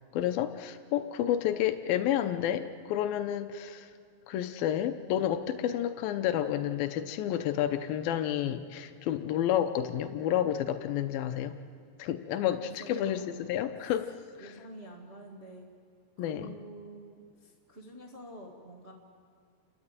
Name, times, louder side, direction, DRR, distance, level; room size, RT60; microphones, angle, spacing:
voice 1, 0.1-3.9 4.3-11.5 12.0-14.1 16.2-16.5, left 11 dB, 80° left, 8 dB, 2.2 m, -30 dB
voice 2, 12.8-13.3 14.4-15.6 16.2-18.9, right 1 dB, 70° right, -2 dB, 0.6 m, -48 dB
30.0 x 13.0 x 8.9 m, 2.3 s
omnidirectional pair, 5.1 m